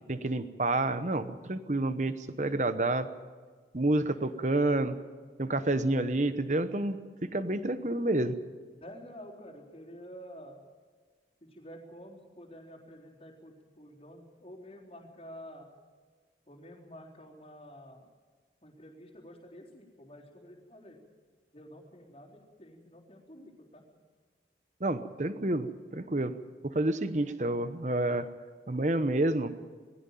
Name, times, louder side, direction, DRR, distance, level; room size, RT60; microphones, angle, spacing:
voice 1, 0.1-3.1 3.7-4.9 5.4-7.0 7.2-8.4 24.8-26.3 26.6-28.3 28.7-29.5, right 2 dB, 40° right, 11 dB, 1.0 m, -29 dB
voice 2, 8.8-10.6 11.4-15.7 16.5-18.1 18.6-21.0 21.5-23.8, equal, 35° left, -4 dB, 3.9 m, -49 dB
19.5 x 16.5 x 9.2 m, 1.5 s
head